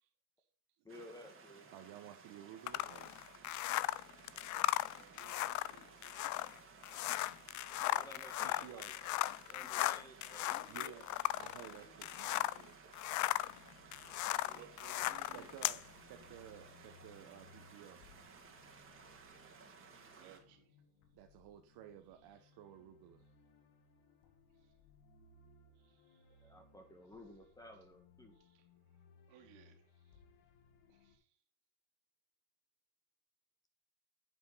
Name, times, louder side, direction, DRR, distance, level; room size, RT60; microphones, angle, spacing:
voice 1, 0.8-1.7 7.8-8.9 9.4-10.9 11.7-12.1 14.1-14.7 26.4-28.4, equal, 10° left, 6 dB, 2.1 m, -55 dB
sound 1, 0.9-20.4, right 5 dB, 30° right, 2.5 m, -58 dB
voice 2, 1.7-3.1 8.4-8.9 10.7-11.1 11.4-12.8 15.3-18.0 21.1-23.2, right 10 dB, 60° right, 5 dB, 1.1 m, -54 dB
sound 2, 2.7-12.6 12.9-15.8, left 16 dB, 45° left, 0.4 m, -37 dB
voice 3, 4.8-6.0 14.5-15.5 19.3-19.8 20.2-20.7 25.8-26.2 28.4-28.6 29.3-29.8 30.9-31.2, right 9 dB, 85° right, 2 dB, 2.7 m, -61 dB
sound 3, 13.4-31.2, left 4 dB, 90° left, 2.1 m, -66 dB
9.7 x 8.8 x 4.1 m, 0.40 s
cardioid pair, 120°, 43 cm